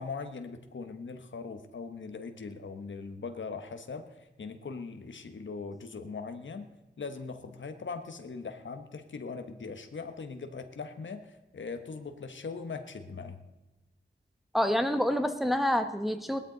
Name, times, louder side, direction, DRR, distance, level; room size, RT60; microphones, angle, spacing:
voice 1, 0.0-6.7 7.0-13.4, left 4 dB, 90° left, 7 dB, 1.2 m, -40 dB
voice 2, 14.5-16.4, left 1 dB, ahead, 7 dB, 1.2 m, -27 dB
18.0 x 12.5 x 4.0 m, 1.1 s
wide cardioid pair, 70°, 19 cm